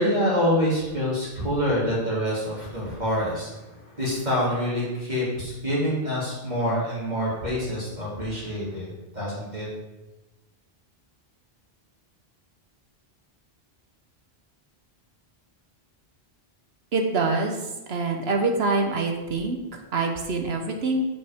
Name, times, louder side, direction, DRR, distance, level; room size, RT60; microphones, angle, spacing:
voice 1, 0.0-8.9 9.1-9.7, equal, 45° right, -8 dB, 3.0 m, -26 dB
voice 2, 16.9-17.6 17.9-21.1, right 3 dB, 80° right, 4 dB, 1.2 m, -25 dB
14.5 x 5.4 x 3.6 m, 1.0 s
omnidirectional pair, 1.1 m